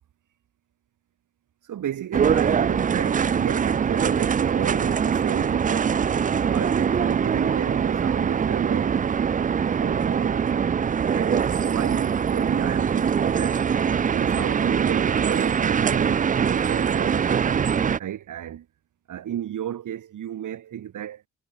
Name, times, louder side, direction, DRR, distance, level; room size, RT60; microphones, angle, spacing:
voice 1, 1.6-6.0 6.4-9.0 9.8-10.5 11.0-13.7 14.1-18.7 19.1-21.2, right 10 dB, 75° right, 4.5 m, -33 dB
sound 1, 2.1-18.0, right 7 dB, 25° right, 0.4 m, -23 dB
cardioid pair, 110°, 31 cm